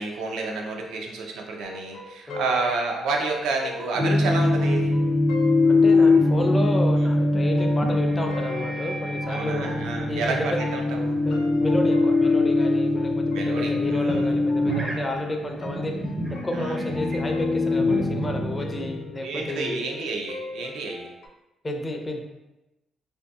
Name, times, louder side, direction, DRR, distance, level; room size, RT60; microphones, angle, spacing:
voice 1, 0.0-4.9 9.3-11.2 13.3-14.2 16.5-16.8 19.2-21.1, right 3 dB, 85° right, 1 dB, 0.4 m, -30 dB
sound 1, 1.6-10.3 10.6-21.3, left 3 dB, 85° left, 0.4 m, -41 dB
sound 2, 4.0-19.1, left 2 dB, 30° right, 0.5 m, -23 dB
voice 2, 5.7-9.7 10.1-10.6 11.2-15.9 16.4-19.8 21.6-22.2, left 1 dB, 25° left, 3 dB, 0.4 m, -31 dB
2.6 x 2.5 x 2.3 m, 0.97 s
cardioid pair, 90°, 0 cm